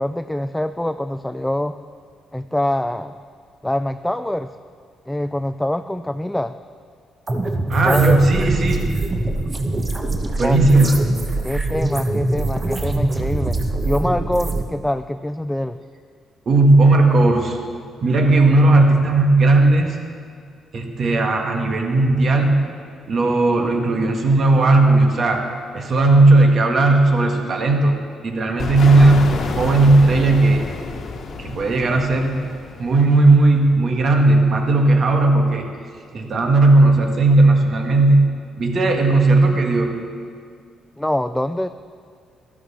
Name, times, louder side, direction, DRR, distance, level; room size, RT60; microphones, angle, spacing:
voice 1, 0.0-1.7 2.3-3.2 3.6-4.5 5.1-6.6 7.8-8.2 10.4-10.6 11.4-13.6 13.8-15.8 41.0-41.7, left 1 dB, 5° left, 10 dB, 0.3 m, -24 dB
sound 1, 7.3-14.6, right 2 dB, 30° right, 1.2 m, -23 dB
voice 2, 7.7-8.9 10.4-10.9 16.4-17.6 18.0-20.0 20.7-22.6 23.1-25.4 25.7-27.9 28.2-30.7 31.4-32.4 32.8-35.7 36.1-38.3 38.6-40.0, right 2 dB, 50° right, 3 dB, 1.5 m, -15 dB
sound 2, 28.6-33.3, left 4 dB, 60° left, 1.2 m, -28 dB
12.5 x 12.5 x 4.3 m, 2.1 s
cardioid pair, 90°, 0 cm